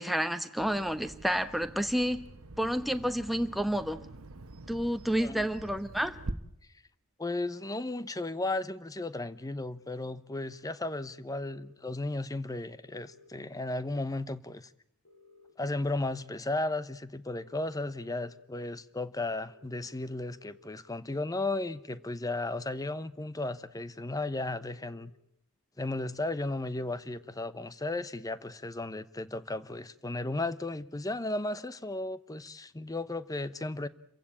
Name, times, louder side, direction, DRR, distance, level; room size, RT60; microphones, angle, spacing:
voice 1, 0.0-2.3 2.6-4.0 4.7-6.2, equal, ahead, 1.1 m, -30 dB
Bird vocalization bird call bird song, 0.6-6.3, right 2 dB, 75° right, 1.2 m, -45 dB
voice 2, 7.2-14.7 15.6-25.1 25.8-33.9, left 2 dB, 15° left, 0.8 m, -35 dB
sound 1, 10.7-11.7 12.8-14.0 15.0-16.2 17.3-18.4 19.5-20.6 21.7-22.8 23.9-25.1 26.2-27.3, left 4 dB, 70° left, 6.9 m, -59 dB
28.5 x 15.5 x 8.8 m
head